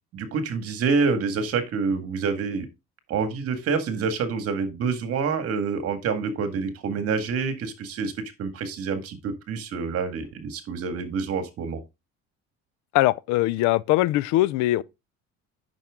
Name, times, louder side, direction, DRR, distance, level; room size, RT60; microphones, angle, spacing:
voice 1, 0.1-2.7 3.1-8.1 8.4-11.8, right 5 dB, 55° right, 1.9 m, -27 dB
voice 2, 12.9-14.8, left 17 dB, 75° left, 0.5 m, -21 dB
9.0 x 6.0 x 3.6 m
cardioid pair, 120°, 29 cm